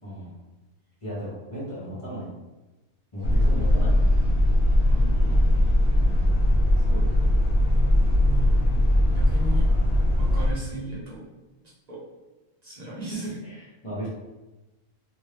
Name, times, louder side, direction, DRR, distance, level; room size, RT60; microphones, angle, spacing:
voice 1, 0.0-0.3 1.0-2.3 3.1-4.0 6.0-6.2 6.8-7.2 13.4-14.1, equal, 30° left, -10 dB, 0.7 m, -35 dB
sound 1, 3.2-10.5, left 1 dB, 65° left, 0.5 m, -20 dB
voice 2, 4.8-5.4 8.2-9.7 10.2-11.3 11.6-12.0 12.6-13.3, right 1 dB, 45° right, -6 dB, 0.6 m, -37 dB
2.6 x 2.5 x 3.2 m, 1.1 s
omnidirectional pair, 1.4 m